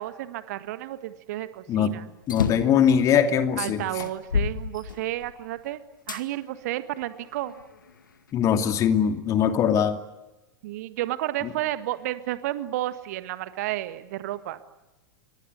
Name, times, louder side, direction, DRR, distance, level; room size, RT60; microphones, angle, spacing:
voice 1, 0.0-2.0 3.6-5.8 6.1-7.5 10.6-14.6, right 15 dB, 50° right, 11 dB, 1.6 m, -31 dB
sound 1, 2.2-2.8 3.5-3.6 4.0-5.4 6.1-6.2 7.0-8.0, left 6 dB, 70° left, 2.1 m, -29 dB
voice 2, 2.3-3.8 8.3-10.0, left 8 dB, 30° left, 7 dB, 2.7 m, -21 dB
29.0 x 24.0 x 8.2 m, 1.0 s
figure-of-eight pair, 95°, 11 cm